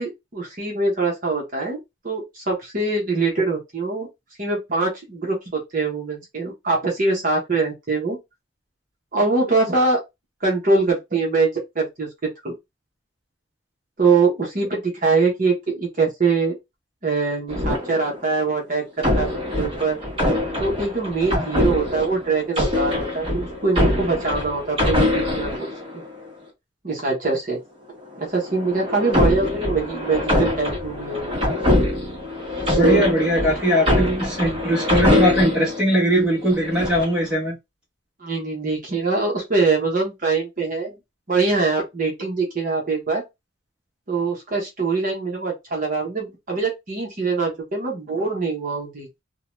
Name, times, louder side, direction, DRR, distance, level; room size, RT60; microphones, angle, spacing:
voice 1, 0.0-4.1 4.4-8.2 9.1-10.0 10.4-12.1 12.4-12.5 14.0-16.5 17.0-19.3 19.5-20.0 20.6-25.7 26.8-27.6 28.2-31.3 32.7-33.1 33.4-33.5 38.2-40.9 41.3-43.2 44.1-49.2, right 3 dB, 40° right, 0.9 m, -23 dB
sound 1, 17.5-18.4 19.0-26.3 28.2-35.8 36.4-37.2, left 1 dB, 25° right, 1.3 m, -23 dB
voice 2, 32.7-37.5, equal, 5° right, 1.2 m, -20 dB
2.7 x 2.2 x 3.0 m
head